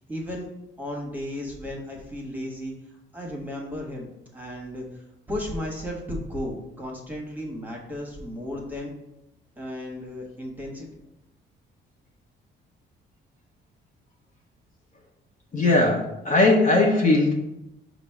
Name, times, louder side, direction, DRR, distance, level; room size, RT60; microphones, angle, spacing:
voice 1, 0.1-0.5 0.8-2.7 3.1-5.0 5.3-8.9 9.6-10.9, left 1 dB, 10° right, -2 dB, 1.1 m, -34 dB
voice 2, 15.5-17.3, left 2 dB, 40° left, -1 dB, 0.8 m, -19 dB
5.0 x 2.0 x 4.5 m, 0.91 s
cardioid pair, 90°, 20 cm